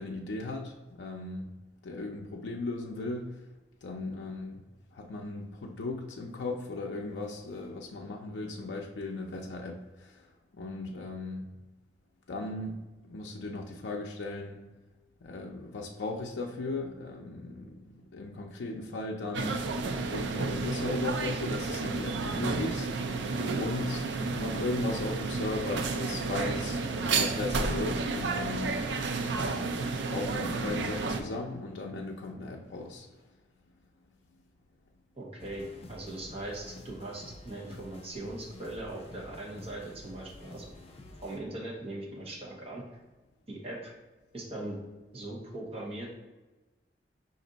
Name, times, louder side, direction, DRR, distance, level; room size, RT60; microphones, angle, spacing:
voice 1, 0.0-1.5 1.8-3.3 3.8-4.6 4.9-10.3 10.5-11.5 12.3-12.8 13.0-14.6 15.2-19.6 20.1-24.1 24.4-28.8 29.5-33.1, left 2 dB, 85° left, 0 dB, 0.5 m, -37 dB
sound 1, 19.3-31.2, right 3 dB, 80° right, 0.4 m, -31 dB
voice 2, 35.2-40.7 41.2-42.8 43.5-43.9 44.3-44.8 45.1-46.2, right 1 dB, 35° right, -3 dB, 1.1 m, -40 dB
sound 2, 35.4-41.4, left 1 dB, 35° left, 0.5 m, -49 dB
5.1 x 2.6 x 3.9 m, 1.2 s
head